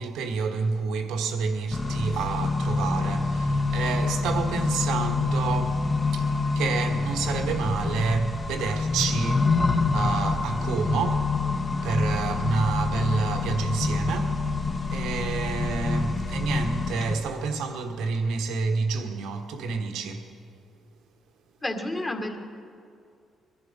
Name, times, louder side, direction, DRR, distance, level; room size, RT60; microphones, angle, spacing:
voice 1, 0.0-20.3, right 5 dB, 90° right, 1.3 m, -29 dB
Accelerating revving vroom, 1.7-17.1, left 3 dB, 40° left, 1.4 m, -26 dB
voice 2, 21.6-22.4, left 1 dB, 20° left, 1.9 m, -30 dB
22.0 x 11.5 x 5.4 m
cardioid pair, 90°, 0 cm